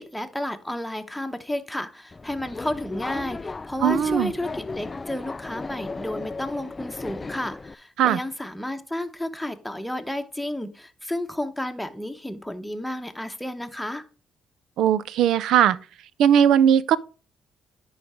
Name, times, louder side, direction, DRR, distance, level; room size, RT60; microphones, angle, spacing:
voice 1, 0.0-14.0, left 1 dB, 5° left, 1.0 m, -32 dB
Subway metro underground, 2.1-7.7, left 3 dB, 25° left, 0.3 m, -35 dB
voice 2, 3.8-4.3 8.0-8.2 14.8-15.8 16.2-17.0, right 9 dB, 80° right, 0.4 m, -19 dB
10.5 x 4.0 x 4.8 m
cardioid pair, 90°, 0 cm